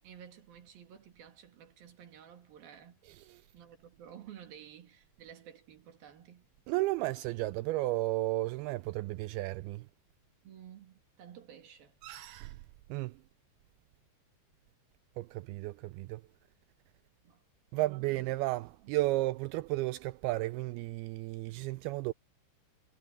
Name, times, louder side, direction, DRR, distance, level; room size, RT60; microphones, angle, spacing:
voice 1, 0.0-3.0 3.5-6.5 10.4-12.0 17.2-17.4 17.7-18.3 18.6-18.9, right 9 dB, 65° right, 4.0 m, -53 dB
voice 2, 3.1-3.4 6.7-9.9 12.0-12.6 12.9-13.2 15.2-16.2 17.7-22.1, right 19 dB, 85° right, 2.3 m, -33 dB
omnidirectional pair, 4.6 m